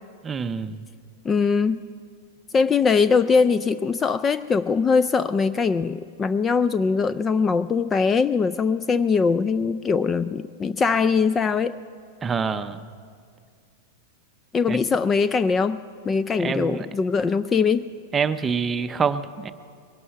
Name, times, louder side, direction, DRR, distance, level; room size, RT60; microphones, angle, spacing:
voice 1, 0.2-0.8 12.2-12.9 14.7-14.8 16.4-16.9 18.1-19.5, right 5 dB, 20° right, 11 dB, 0.6 m, -26 dB
voice 2, 1.2-1.8 2.5-11.8 14.5-15.8 16.1-17.8, left 5 dB, 20° left, 14 dB, 0.3 m, -21 dB
22.0 x 11.0 x 5.8 m, 2.2 s
hypercardioid pair, 130°, 0 cm